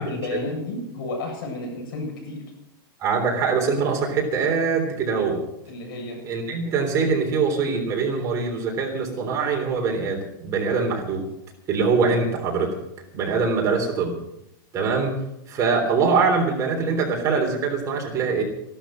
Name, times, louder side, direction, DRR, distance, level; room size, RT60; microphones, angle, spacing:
voice 1, 0.0-2.4 5.7-6.2, left 2 dB, 70° left, 1 dB, 8.0 m, -31 dB
voice 2, 3.0-5.4 6.2-11.2 11.7-12.7 13.1-14.2 14.7-15.1 15.5-18.4, right 5 dB, 25° right, 1 dB, 3.4 m, -23 dB
15.0 x 12.0 x 6.4 m, 0.81 s
supercardioid pair, 155°, 12 cm